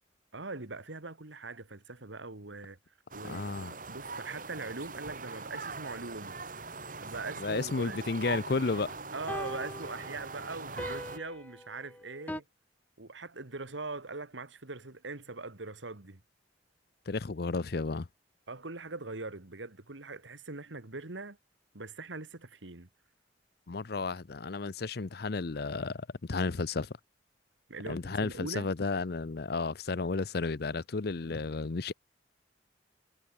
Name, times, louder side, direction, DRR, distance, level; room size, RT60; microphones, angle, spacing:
voice 1, 0.3-2.8 3.1-6.4 7.0-8.0 9.1-12.4 13.0-16.2 18.5-21.4 21.7-22.9 27.7-28.7, right 3 dB, 90° right, 2.0 m, -42 dB
sound 1, 3.1-11.2, right 4 dB, 50° right, 6.0 m, -42 dB
voice 2, 3.2-3.7 7.4-9.0 17.1-18.1 23.7-26.9 27.9-31.9, left 3 dB, 55° left, 0.6 m, -33 dB
sound 2, 9.3-12.4, left 1 dB, 10° left, 1.7 m, -42 dB
head